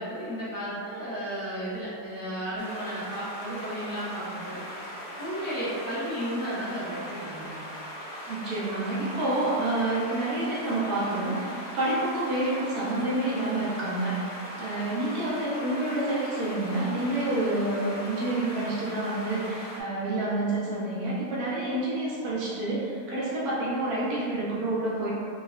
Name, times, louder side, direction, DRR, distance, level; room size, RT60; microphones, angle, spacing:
voice 1, 0.0-4.6 5.2-7.7, equal, 25° left, -12 dB, 0.4 m, -33 dB
sound 1, 2.6-19.8, equal, 70° left, 1.0 m, -40 dB
voice 2, 8.3-25.1, right 2 dB, 70° right, -7 dB, 1.1 m, -28 dB
3.7 x 2.1 x 2.3 m, 2.4 s
omnidirectional pair, 1.8 m